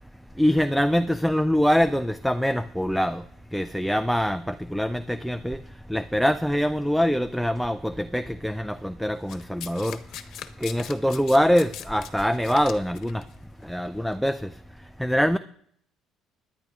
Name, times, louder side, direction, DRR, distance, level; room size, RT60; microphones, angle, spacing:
voice 1, 0.4-3.2 3.5-5.6 5.9-10.0 10.6-13.2 13.7-14.4 15.0-15.4, equal, ahead, 0.3 m, -24 dB
Domestic sounds home sounds, 9.3-13.2 14.1-14.3, left 10 dB, 65° left, 1.0 m, -40 dB
20.5 x 10.5 x 2.4 m
cardioid pair, 120°, 0 cm